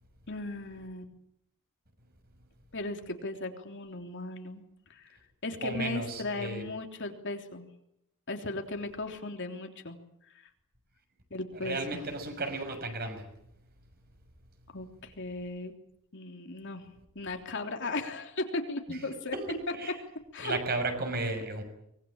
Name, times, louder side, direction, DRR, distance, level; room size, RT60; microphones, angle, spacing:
voice 1, 0.3-1.1 2.7-4.6 4.9-5.2 5.4-7.7 8.3-10.0 10.3-10.5 11.3-12.0 14.7-15.7 16.1-16.8 17.1-19.4 20.3-20.6, left 2 dB, 55° left, 4 dB, 3.4 m, -37 dB
voice 2, 5.6-6.6 11.6-13.2 18.9-19.0 19.3-19.9 20.4-21.6, right 2 dB, 45° right, 6 dB, 6.4 m, -34 dB
24.5 x 22.0 x 9.0 m, 0.79 s
head